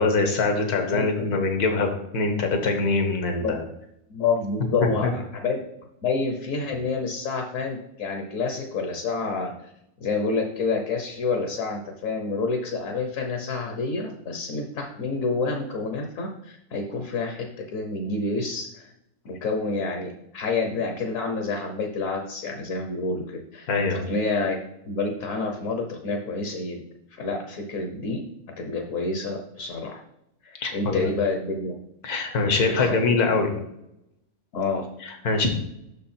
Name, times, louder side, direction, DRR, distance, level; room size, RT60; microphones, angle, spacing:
voice 1, 0.0-3.6 23.7-24.0 30.6-31.1 32.0-33.5 35.0-35.5, left 3 dB, 80° left, 5 dB, 1.7 m, -23 dB
voice 2, 0.9-1.4 3.4-3.5 4.1-5.6 6.0-9.5 10.0-18.9 19.2-24.6 24.9-26.8 27.1-28.2 28.6-30.0 30.4-31.7 32.5-33.2 34.5-34.9, left 3 dB, 60° left, 3 dB, 1.2 m, -28 dB
6.2 x 5.6 x 4.3 m, 0.81 s
omnidirectional pair, 1.6 m